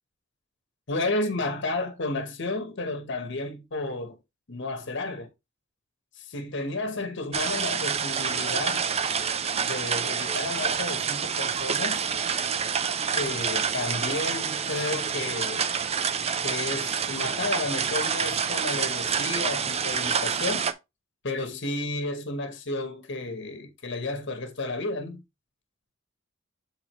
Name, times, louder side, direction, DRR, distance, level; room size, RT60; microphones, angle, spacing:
voice 1, 0.9-4.2 4.5-5.3 6.2-8.9 9.5-12.0 13.1-15.7 16.4-20.7 21.2-25.2, left 2 dB, 60° left, 1.0 m, -32 dB
sound 1, 7.3-20.7, right 7 dB, 30° right, 0.4 m, -28 dB
7.4 x 4.5 x 3.0 m
head